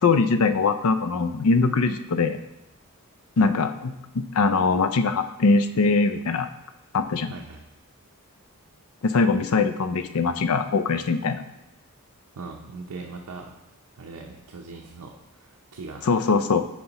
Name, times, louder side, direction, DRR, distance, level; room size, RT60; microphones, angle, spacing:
voice 1, 0.0-2.4 3.4-6.5 6.9-7.3 9.0-11.4 16.0-16.6, left 4 dB, 65° left, 10 dB, 0.5 m, -22 dB
voice 2, 7.3-7.6 12.4-13.6 14.0-16.1, right 3 dB, 75° right, 0 dB, 0.6 m, -40 dB
11.0 x 4.4 x 2.9 m, 0.92 s
head